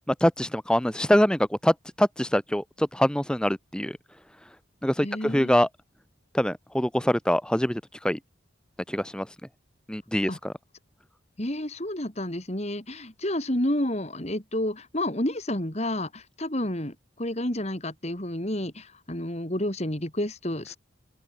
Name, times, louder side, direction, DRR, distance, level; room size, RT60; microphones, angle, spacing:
voice 1, 0.2-4.0 4.8-5.7 6.3-8.2 8.9-9.3 9.9-10.5, equal, 5° left, 0.8 m, -24 dB
voice 2, 5.0-5.6 10.3-10.4 11.4-20.8, left 1 dB, 35° left, 2.9 m, -30 dB
open air
head